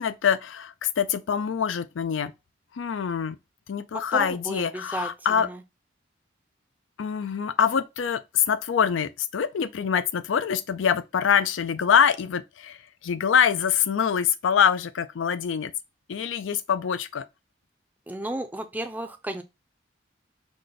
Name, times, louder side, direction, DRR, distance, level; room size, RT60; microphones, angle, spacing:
voice 1, 0.0-2.3 2.7-3.4 3.7-5.5 7.0-15.7 16.1-17.2, left 7 dB, 90° left, 0.4 m, -24 dB
voice 2, 3.9-5.6 18.1-19.4, right 1 dB, 10° right, 0.4 m, -33 dB
5.0 x 2.2 x 3.9 m
head